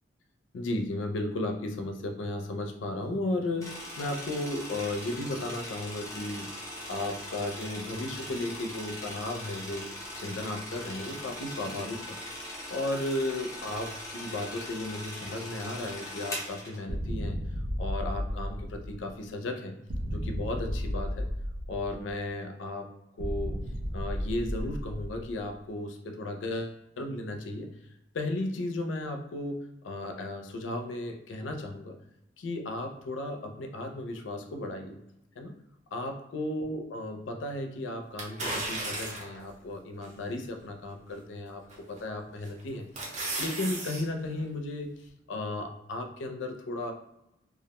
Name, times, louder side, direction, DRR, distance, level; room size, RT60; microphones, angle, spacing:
voice 1, 0.5-6.5 6.9-17.4 17.8-19.8 20.1-21.3 21.7-22.9 23.2-23.6 23.9-27.7 28.1-29.6 29.8-31.9 32.4-35.0 35.4-35.6 35.9-46.9, left 2 dB, 75° left, 4 dB, 0.4 m, -35 dB
sound 1, 3.6-16.8, left 1 dB, 15° left, 0.7 m, -40 dB
sound 2, 16.9-19.2 19.9-22.2 23.2-25.5, equal, 85° right, 0.5 m, -33 dB
sound 3, 38.2-39.4 40.0-40.1 41.7-42.0 42.5-44.0 44.4-44.5, right 2 dB, 40° right, 0.6 m, -34 dB
2.3 x 2.1 x 2.9 m, 0.87 s
head